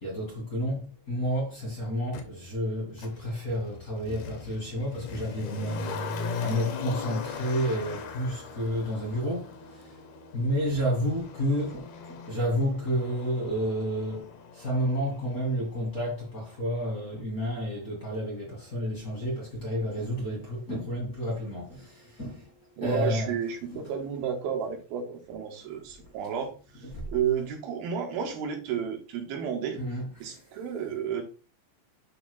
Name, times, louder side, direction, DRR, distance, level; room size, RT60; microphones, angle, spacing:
voice 1, 0.0-9.5 10.3-22.5 22.8-23.3 23.7-23.9 26.9-27.1 29.8-30.4, equal, 30° left, 2.0 m, -31 dB
Motor vehicle (road), 2.1-2.2 3.0-15.9 16.2-16.3, left 4 dB, 75° left, 1.6 m, -39 dB
voice 2, 22.8-26.5 27.1-29.8 30.2-31.2, right 7 dB, 80° right, 3.0 m, -31 dB
11.5 x 4.3 x 2.2 m
omnidirectional pair, 4.2 m